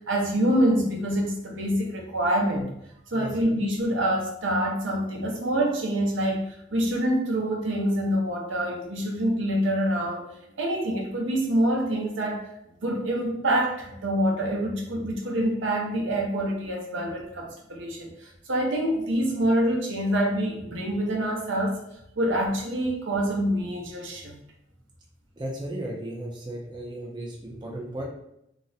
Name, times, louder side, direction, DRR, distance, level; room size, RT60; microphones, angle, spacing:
voice 1, 0.1-2.7 3.1-10.2 10.6-12.4 12.8-21.8 22.2-24.3, right 1 dB, 80° right, -1 dB, 0.7 m, -26 dB
voice 2, 25.4-28.0, right 1 dB, 25° right, -2 dB, 0.4 m, -35 dB
2.5 x 2.1 x 3.9 m, 0.78 s
head